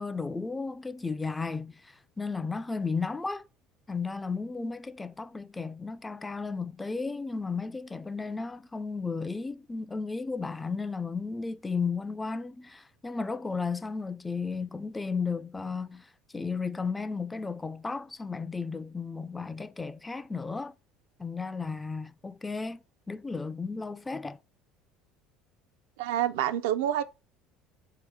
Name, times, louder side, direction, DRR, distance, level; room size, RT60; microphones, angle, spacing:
voice 1, 0.0-3.5 3.9-20.8 21.2-24.4, left 4 dB, 15° left, 0.3 m, -34 dB
voice 2, 26.0-27.0, right 11 dB, 75° right, 0.3 m, -27 dB
3.3 x 2.8 x 4.6 m
hypercardioid pair, 70°, 0 cm